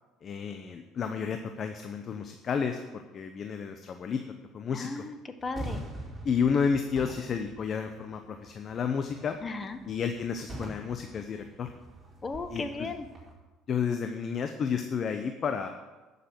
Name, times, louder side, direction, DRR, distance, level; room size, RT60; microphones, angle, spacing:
voice 1, 0.2-4.2 4.5-5.0 6.2-9.4 9.8-11.7 12.5-12.9 13.7-15.7, left 6 dB, 45° left, 7 dB, 0.9 m, -31 dB
voice 2, 4.7-5.8 9.4-9.8 12.2-13.1, left 3 dB, 30° left, 9 dB, 1.3 m, -36 dB
sound 1, 5.4-13.3, right 1 dB, 20° right, 4.4 m, -44 dB
11.5 x 6.9 x 7.9 m, 1.2 s
supercardioid pair, 85°, 0 cm